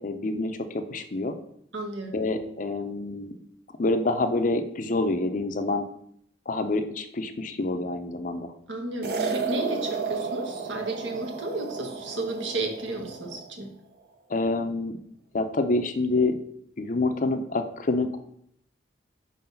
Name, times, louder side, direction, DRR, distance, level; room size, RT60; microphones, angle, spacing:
voice 1, 0.0-1.4 2.1-3.3 3.8-5.8 6.5-8.5 14.3-15.0 15.3-16.4 16.8-18.2, left 2 dB, 45° left, 8 dB, 0.5 m, -27 dB
voice 2, 1.7-2.1 8.7-13.7, right 2 dB, 70° right, 3 dB, 1.2 m, -33 dB
sound 1, 9.0-13.5, right 5 dB, 55° right, 0.6 m, -32 dB
4.8 x 3.9 x 5.7 m, 0.70 s
head